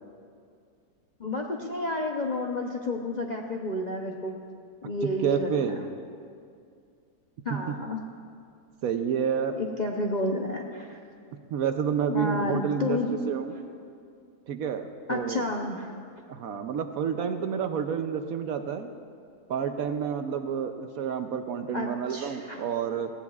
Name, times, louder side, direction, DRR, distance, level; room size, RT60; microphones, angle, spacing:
voice 1, 1.2-4.4 4.8-5.8 7.4-8.0 9.6-11.0 12.1-13.2 15.1-15.9 21.7-22.6, left 2 dB, 50° left, 0 dB, 0.5 m, -31 dB
voice 2, 5.2-5.8 7.5-7.7 8.8-9.6 11.5-13.0 13.3-13.6 14.5-15.4 16.3-18.9 19.5-23.1, right 7 dB, 65° right, 7 dB, 1.0 m, -29 dB
18.5 x 16.5 x 2.4 m, 2.3 s
omnidirectional pair, 1.8 m